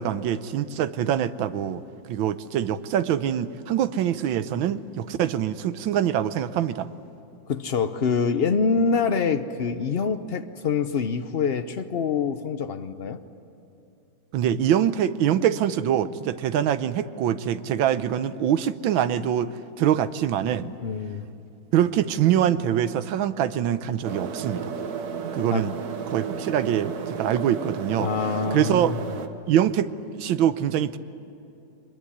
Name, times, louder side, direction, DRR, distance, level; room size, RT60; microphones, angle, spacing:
voice 1, 0.0-1.8 2.1-6.9 14.3-20.7 21.7-24.7 25.3-25.7 26.1-28.1 28.5-28.9 29.5-31.0, right 10 dB, 80° right, 13 dB, 1.5 m, -24 dB
voice 2, 7.5-13.2 20.8-21.3 25.5-25.7 28.0-29.0, left 5 dB, 75° left, 9 dB, 0.5 m, -25 dB
sound 1, 24.0-29.3, right 6 dB, 55° right, 1.6 m, -33 dB
23.0 x 21.5 x 10.0 m, 2.8 s
omnidirectional pair, 2.1 m